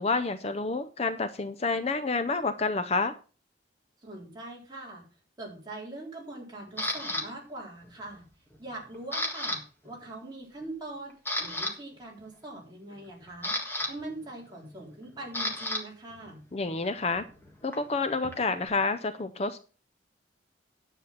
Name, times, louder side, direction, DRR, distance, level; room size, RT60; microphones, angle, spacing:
voice 1, 0.0-3.1 16.5-17.2 17.6-19.6, left 3 dB, 30° left, 11 dB, 0.5 m, -29 dB
voice 2, 4.0-5.0 5.4-8.3 8.6-13.6 13.9-16.4, right 2 dB, 20° right, -3 dB, 3.9 m, -42 dB
Camera, 6.8-7.2 7.8-8.2 8.5-9.6 9.9-10.1 10.6-10.7 11.1-11.7 12.9-15.8 16.1-18.7, left 1 dB, 10° left, 1.6 m, -34 dB
10.5 x 7.5 x 5.7 m, 0.36 s
head